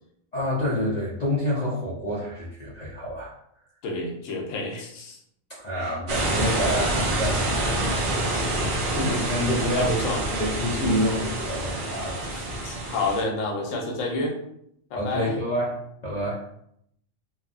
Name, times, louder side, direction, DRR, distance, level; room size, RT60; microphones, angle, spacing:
voice 1, 0.3-3.3 5.5-8.6 9.3-9.9 10.2-12.2 14.9-16.4, left 1 dB, 55° left, -6 dB, 0.4 m, -28 dB
voice 2, 3.8-5.2 5.8-5.9 8.9-9.3 9.7-10.2 10.8-11.0 12.3-14.4 14.9-15.5, left 2 dB, 75° left, 1 dB, 1.0 m, -29 dB
sound 1, 6.1-13.2, right 1 dB, 55° right, 0.6 m, -27 dB
2.9 x 2.1 x 2.4 m, 0.72 s
omnidirectional pair, 1.3 m